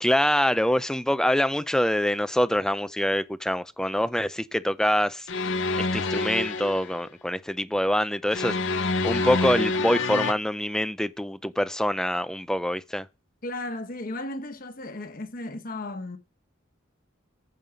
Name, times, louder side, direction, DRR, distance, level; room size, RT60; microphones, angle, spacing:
voice 1, 0.0-5.3 5.8-8.6 8.8-13.1, equal, 5° left, 0.4 m, -25 dB
sound 1, 5.3-6.9 8.3-10.3, left 3 dB, 65° left, 0.8 m, -27 dB
voice 2, 13.4-16.2, left 2 dB, 45° left, 1.1 m, -35 dB
14.5 x 5.5 x 5.1 m
head